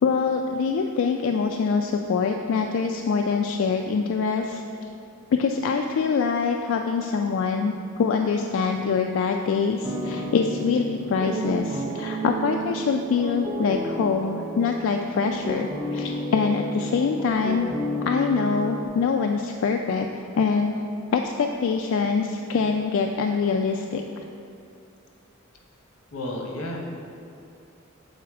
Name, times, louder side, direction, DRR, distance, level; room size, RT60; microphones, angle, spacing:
voice 1, 0.0-4.6 5.3-17.7 18.0-20.7 21.1-24.0, left 5 dB, 65° left, 3 dB, 0.3 m, -24 dB
sound 1, 9.8-18.9, right 1 dB, 15° right, 0.4 m, -32 dB
voice 2, 26.1-26.8, left 1 dB, 90° left, 0 dB, 1.0 m, -31 dB
7.1 x 4.1 x 4.7 m, 2.5 s
head